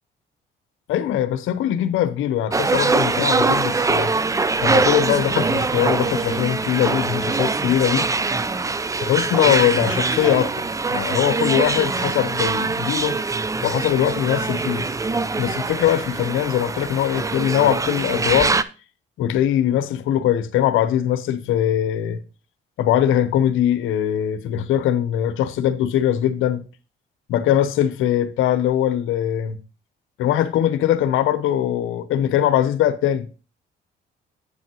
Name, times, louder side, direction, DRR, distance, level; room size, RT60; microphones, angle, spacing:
voice 1, 0.9-4.1 4.6-8.1 9.0-13.2 13.6-14.9 15.4-18.6 19.2-22.2 22.8-26.6 27.3-29.6 30.2-33.3, left 11 dB, 85° left, 0.8 m, -21 dB
sound 1, 2.5-18.6, right 3 dB, 15° right, 0.4 m, -23 dB
8.6 x 7.1 x 3.0 m
cardioid pair, 90°, 20 cm